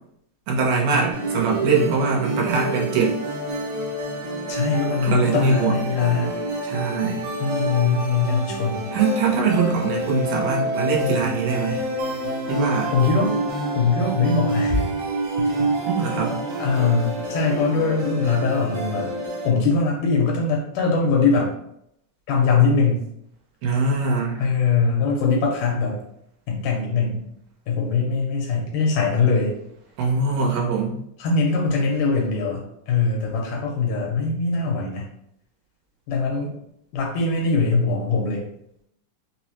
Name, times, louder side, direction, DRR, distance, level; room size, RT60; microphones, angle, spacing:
voice 1, 0.5-3.1 5.0-5.8 6.6-7.2 8.9-11.8 12.5-12.9 15.9-16.4 23.6-24.4 30.0-31.0, right 4 dB, 90° right, -1 dB, 2.4 m, -22 dB
sound 1, 1.1-19.5, right 1 dB, 75° right, 2.0 m, -28 dB
voice 2, 4.5-6.4 7.4-8.9 12.9-13.4 13.7-14.9 15.4-15.7 16.0-16.1 16.6-19.1 19.4-21.5 22.3-23.0 24.4-26.0 26.5-27.3 27.7-29.5 31.2-35.1 36.1-36.5 36.9-38.4, left 4 dB, 85° left, -2 dB, 2.2 m, -22 dB
5.3 x 2.1 x 2.9 m, 0.74 s
omnidirectional pair, 3.6 m